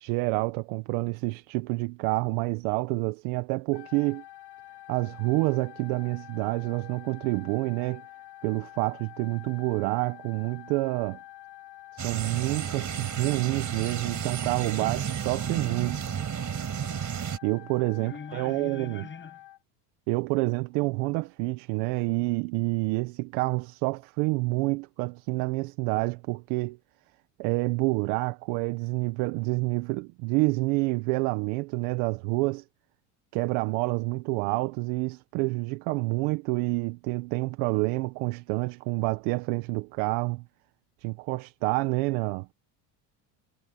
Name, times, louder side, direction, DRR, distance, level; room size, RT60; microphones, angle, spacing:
voice 1, 0.0-4.2 4.9-8.0 8.4-11.2 11.9-16.1 17.4-19.1 20.1-26.8 27.4-32.6 33.3-40.4 41.0-42.5, right 24 dB, 75° right, 1.0 m, -28 dB
Wind instrument woodwind instrument, 3.7-19.6, left 14 dB, 55° left, 7.3 m, -48 dB
sound 1, 12.0-17.4, right 8 dB, 35° right, 4.4 m, -32 dB
voice 2, 18.0-19.4, left 5 dB, 25° left, 7.7 m, -42 dB
supercardioid pair, 105°, 48 cm